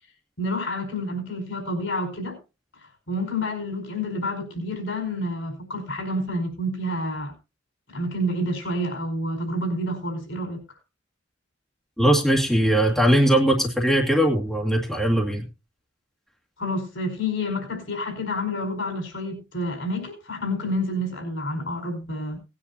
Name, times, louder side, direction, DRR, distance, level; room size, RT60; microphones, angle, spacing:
voice 1, 0.4-2.4 3.1-7.3 7.9-10.6 16.6-22.4, left 1 dB, 65° left, 5.0 m, -29 dB
voice 2, 12.0-15.4, right 1 dB, ahead, 2.0 m, -20 dB
19.0 x 9.8 x 2.8 m
head